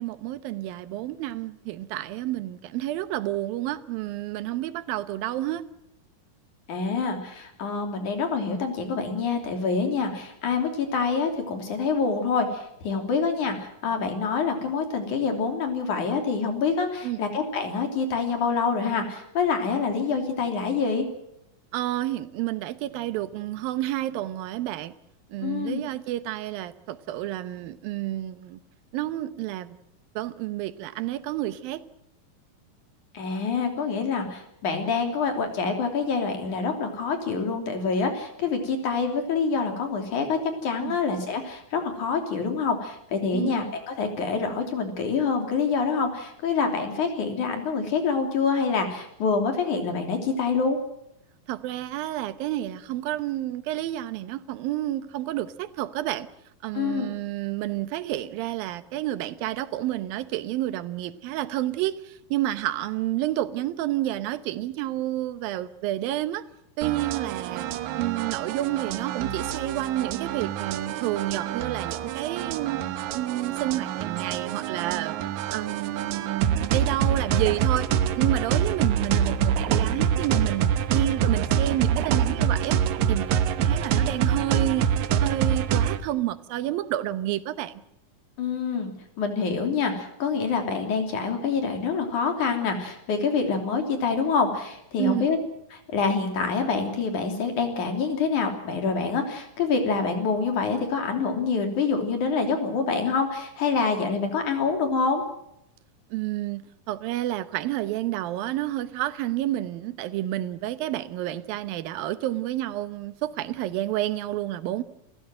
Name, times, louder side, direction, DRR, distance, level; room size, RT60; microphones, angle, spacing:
voice 1, 0.0-5.7 17.0-17.2 21.7-24.9 25.3-28.6 28.9-29.8 30.2-31.8 40.8-41.0 43.3-43.6 51.5-56.3 56.6-66.5 66.8-67.7 68.0-72.8 73.1-75.2 75.5-77.9 78.2-82.8 83.1-84.9 85.2-87.8 95.0-95.3 106.1-114.8, right 14 dB, 85° right, 2.7 m, -30 dB
voice 2, 6.7-21.1 25.4-25.8 33.1-50.8 56.7-57.1 88.4-88.9 89.2-95.4 95.7-105.2, left 5 dB, 60° left, 4.4 m, -26 dB
sound 1, 66.8-86.0, right 8 dB, 65° right, 2.1 m, -26 dB
28.5 x 15.0 x 7.7 m
omnidirectional pair, 4.1 m